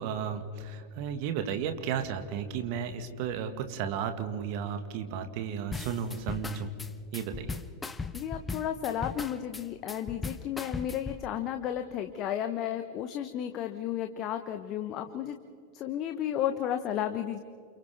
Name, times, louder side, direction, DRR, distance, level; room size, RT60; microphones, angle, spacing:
voice 1, 0.0-6.7 7.1-7.6, right 7 dB, 45° right, 7 dB, 1.9 m, -34 dB
sound 1, 5.7-11.2, left 4 dB, 10° left, 1.0 m, -38 dB
voice 2, 8.1-15.4 15.7-17.4, left 10 dB, 35° left, 8 dB, 1.1 m, -33 dB
29.5 x 29.0 x 3.6 m, 2.2 s
figure-of-eight pair, 90°, 0 cm